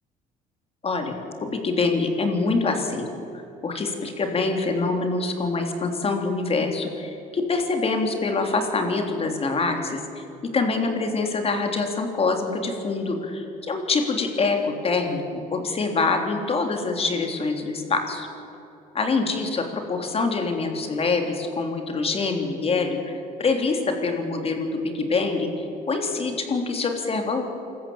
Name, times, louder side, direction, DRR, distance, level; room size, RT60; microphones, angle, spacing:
voice 1, 0.8-1.1 1.4-3.1 3.3-10.2 10.5-18.3 18.9-27.4, left 3 dB, 35° left, 4 dB, 3.5 m, -25 dB
26.0 x 14.0 x 8.8 m, 2.9 s
cardioid pair, 110°, 17 cm